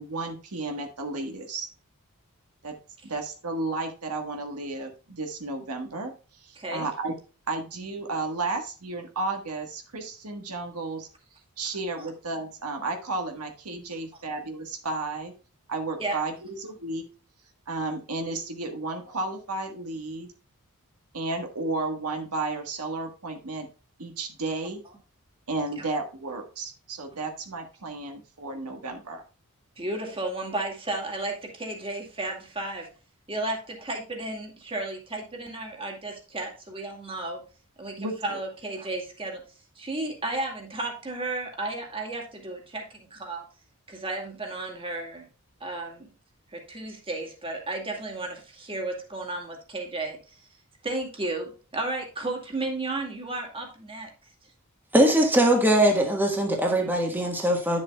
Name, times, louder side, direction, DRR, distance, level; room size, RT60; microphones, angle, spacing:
voice 1, 0.0-1.7 2.6-2.7 3.0-7.2 7.5-11.1 11.6-15.3 15.7-17.0 17.7-20.3 21.1-23.7 24.0-24.8 25.5-29.2 38.0-38.4, right 3 dB, 80° right, 4 dB, 1.4 m, -33 dB
voice 2, 6.6-6.9 12.0-12.1 16.0-16.2 25.8-25.9 29.8-32.9 33.3-37.4 37.8-39.4 39.8-43.4 43.9-45.3 45.6-46.1 46.5-50.4 50.8-54.1, right 2 dB, 25° right, 2 dB, 2.0 m, -33 dB
voice 3, 54.9-57.8, right 1 dB, 10° right, 1 dB, 1.4 m, -21 dB
10.5 x 7.1 x 2.3 m, 0.35 s
head